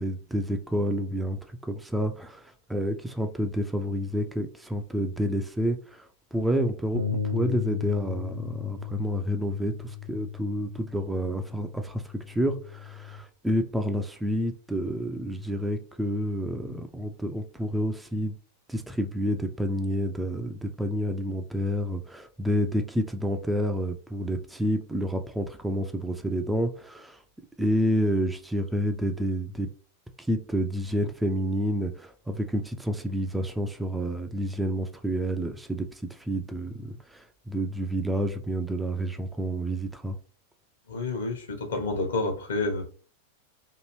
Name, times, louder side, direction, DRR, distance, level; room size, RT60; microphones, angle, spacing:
voice 1, 0.0-18.4 18.7-27.2 27.6-29.7 30.2-40.2, equal, 5° right, 0.3 m, -29 dB
Bass guitar, 6.9-13.2, left 7 dB, 85° right, 0.5 m, -35 dB
voice 2, 40.9-42.8, left 3 dB, 65° left, 1.0 m, -29 dB
2.8 x 2.6 x 3.0 m
figure-of-eight pair, 90°, 0 cm